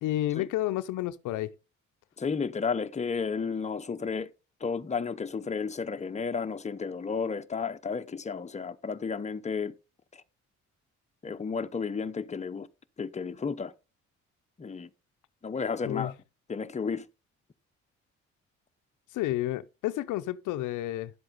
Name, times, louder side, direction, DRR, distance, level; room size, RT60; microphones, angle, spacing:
voice 1, 0.0-1.5 15.8-16.1 19.1-21.1, left 14 dB, 85° left, 0.6 m, -30 dB
voice 2, 2.2-4.3 4.6-9.7 10.1-10.2 11.2-12.7 13.0-13.7 14.6-14.9 15.4-16.1 16.5-17.1, left 5 dB, 25° left, 0.8 m, -32 dB
11.0 x 7.9 x 4.0 m
cardioid pair, 90°, 30 cm